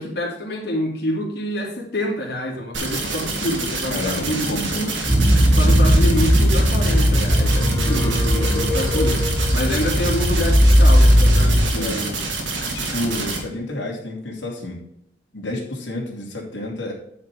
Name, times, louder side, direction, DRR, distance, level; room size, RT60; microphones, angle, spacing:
voice 1, 0.0-4.9 5.5-12.2, left 1 dB, 60° left, -4 dB, 2.5 m, -27 dB
sound 1, 2.7-13.4, right 3 dB, 90° right, 2.4 m, -27 dB
voice 2, 3.9-4.8 11.7-12.0 12.6-14.8 15.3-16.9, left 1 dB, 80° left, -2 dB, 2.7 m, -29 dB
sound 2, 5.1-11.7, equal, 20° right, 1.3 m, -17 dB
sound 3, 7.3-9.7, left 3 dB, 15° left, 1.5 m, -29 dB
9.5 x 5.3 x 4.6 m, 0.73 s
head